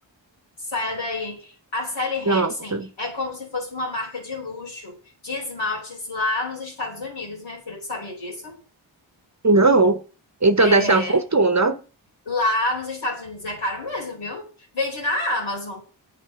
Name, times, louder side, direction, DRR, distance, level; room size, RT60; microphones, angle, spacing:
voice 1, 0.7-4.9 5.2-8.6 10.6-11.2 12.2-14.5 14.7-15.8, left 2 dB, 80° left, 4.5 m, -28 dB
voice 2, 2.3-2.9 9.4-10.0 10.4-11.8, right 3 dB, 35° right, 1.1 m, -18 dB
8.3 x 7.2 x 6.1 m
wide cardioid pair, 40°, 46 cm